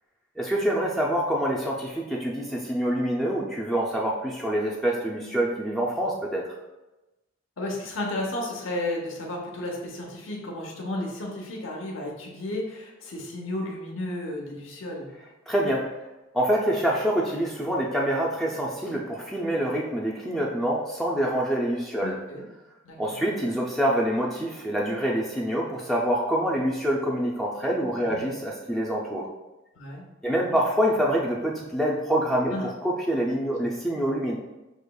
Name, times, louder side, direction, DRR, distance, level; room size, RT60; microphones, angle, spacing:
voice 1, 0.4-6.5 15.5-15.9 16.3-22.2 23.0-29.3 30.2-32.6 32.8-34.4, right 1 dB, ahead, -4 dB, 0.4 m, -26 dB
voice 2, 7.6-15.1 22.0-22.5 22.8-23.2 28.0-28.3 29.8-30.0 30.3-30.6 32.5-32.7, left 1 dB, 70° left, -1 dB, 0.9 m, -33 dB
6.2 x 2.9 x 2.3 m, 1.0 s
head